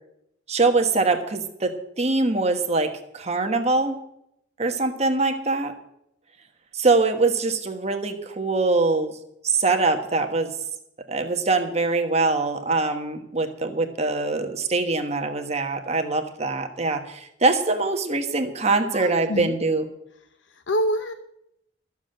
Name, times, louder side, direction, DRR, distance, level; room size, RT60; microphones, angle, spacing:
voice 1, 0.5-1.7 2.0-2.9 3.1-4.0 4.6-5.7 6.7-9.1 9.4-10.5 11.1-19.9, right 3 dB, 35° right, 5 dB, 1.4 m, -23 dB
voice 2, 18.9-19.6 20.5-21.1, equal, 80° left, 8 dB, 0.8 m, -26 dB
13.5 x 7.2 x 7.8 m, 0.77 s
head